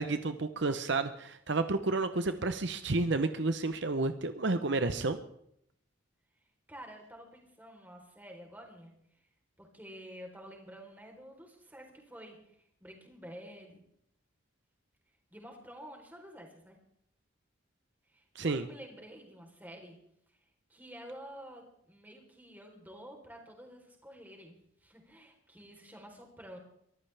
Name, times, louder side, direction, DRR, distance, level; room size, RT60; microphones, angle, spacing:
voice 1, 0.0-5.2 18.3-18.7, right 3 dB, 60° right, 10 dB, 0.9 m, -31 dB
voice 2, 6.7-9.2 9.6-13.8 15.3-16.8 18.1-20.0 20.7-26.6, equal, 10° right, 1 dB, 3.8 m, -50 dB
23.5 x 14.5 x 3.5 m, 0.71 s
head